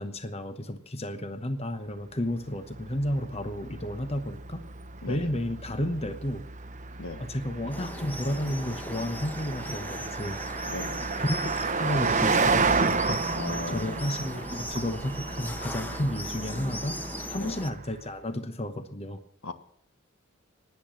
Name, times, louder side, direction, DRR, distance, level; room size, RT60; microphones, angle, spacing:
voice 1, 0.0-4.6 5.1-6.4 7.2-10.4 11.2-13.4 13.7-17.0 17.3-19.2, left 1 dB, 30° left, 9 dB, 1.0 m, -32 dB
Car passing by, 2.2-18.0, right 4 dB, 35° right, 0.9 m, -32 dB
sound 1, 7.7-17.7, left 1 dB, 10° left, 1.2 m, -39 dB
voice 2, 10.6-11.0 13.3-14.1 17.3-17.6 19.4-19.5, left 3 dB, 70° left, 9 dB, 1.5 m, -37 dB
17.5 x 10.5 x 7.6 m, 0.62 s
head